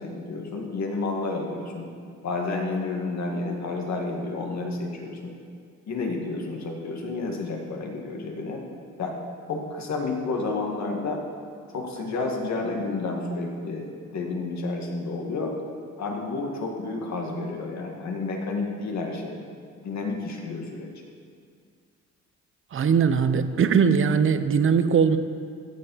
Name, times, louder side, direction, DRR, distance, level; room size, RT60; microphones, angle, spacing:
voice 1, 0.0-1.9 2.2-5.3 5.9-8.6 9.0-9.1 9.5-11.2 11.7-15.5 16.0-19.4 19.8-20.9, left 3 dB, 65° left, 1 dB, 2.1 m, -30 dB
voice 2, 22.7-25.2, right 6 dB, 45° right, 11 dB, 0.8 m, -20 dB
15.0 x 7.5 x 5.7 m, 2.2 s
cardioid pair, 90°, 30 cm